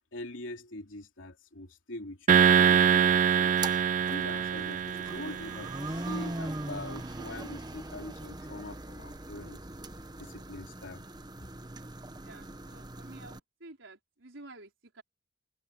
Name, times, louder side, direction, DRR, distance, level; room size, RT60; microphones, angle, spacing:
voice 1, 0.1-3.6 4.0-9.6 10.2-11.0, left 2 dB, 85° left, 3.2 m, -43 dB
sound 1, 2.3-5.8, right 8 dB, 40° right, 0.3 m, -24 dB
sound 2, 3.5-13.4, right 2 dB, 20° right, 1.1 m, -41 dB
voice 2, 12.2-15.0, right 2 dB, 90° right, 4.5 m, -51 dB
head